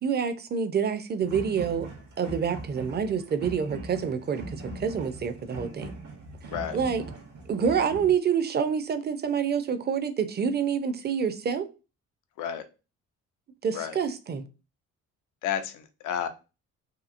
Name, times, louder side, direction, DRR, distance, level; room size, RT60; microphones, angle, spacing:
voice 1, 0.0-1.9 2.2-5.9 6.7-7.0 7.5-11.7 13.6-14.4, right 7 dB, 35° right, 0.5 m, -27 dB
sound 1, 1.2-8.1, right 2 dB, 80° right, 1.0 m, -40 dB
voice 2, 15.4-16.3, left 9 dB, 85° left, 0.5 m, -31 dB
2.8 x 2.7 x 2.5 m
cardioid pair, 90°, 30 cm